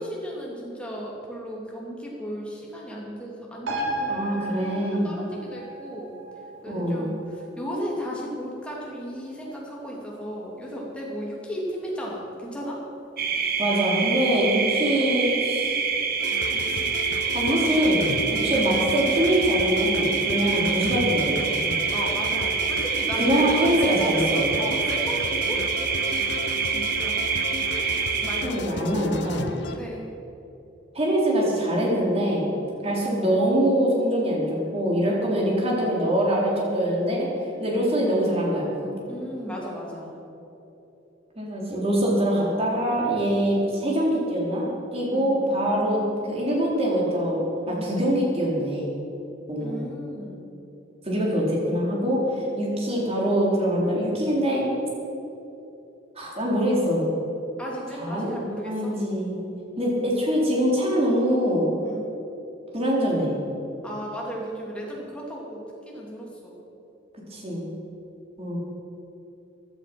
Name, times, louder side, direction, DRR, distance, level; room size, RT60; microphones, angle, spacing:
voice 1, 0.0-6.1 6.6-12.8 18.2-18.5 21.9-24.3 24.6-25.7 26.0-26.3 26.6-27.2 27.7-28.9 29.3-30.1 32.5-32.7 39.1-40.1 45.1-45.7 47.7-47.9 49.6-50.4 52.1-52.5 57.6-58.9 61.8-62.1 63.8-66.6, equal, 5° left, -4 dB, 3.0 m, -35 dB
sound 1, 3.7-10.6 11.0-11.1, right 1 dB, 75° right, 2.9 m, -36 dB
voice 2, 4.1-5.1 6.7-7.0 13.6-15.7 16.7-18.0 18.3-21.7 23.1-24.5 28.4-29.5 30.9-37.3 37.6-38.7 41.4-47.4 47.7-48.9 49.5-49.7 51.0-54.7 56.2-57.0 58.0-59.4 59.8-61.7 62.7-63.3 67.3-67.7 68.4-68.6, equal, 30° right, -4 dB, 3.7 m, -24 dB
sound 2, 13.2-28.4, right 6 dB, 50° right, 1.2 m, -26 dB
sound 3, 16.2-29.8, left 3 dB, 60° left, 0.8 m, -34 dB
16.0 x 11.0 x 6.2 m, 3.0 s
head